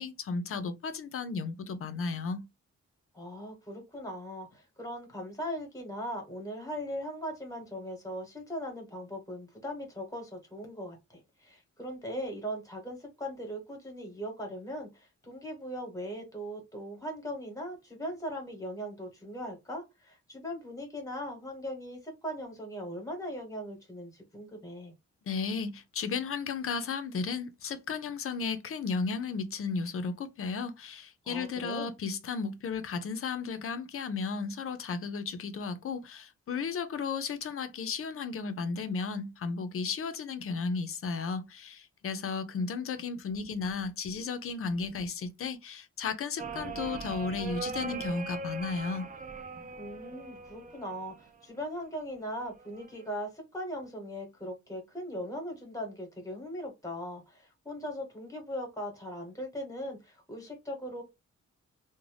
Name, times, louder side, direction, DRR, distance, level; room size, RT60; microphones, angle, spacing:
voice 1, 0.0-2.4 25.3-49.1, left 5 dB, 50° left, 0.5 m, -34 dB
voice 2, 3.1-24.9 31.2-31.9 49.8-61.0, equal, 10° left, 1.0 m, -39 dB
sound 1, 46.4-51.4 52.6-53.1, right 4 dB, 30° right, 0.4 m, -40 dB
2.5 x 2.1 x 3.2 m
wide cardioid pair, 150°, 29 cm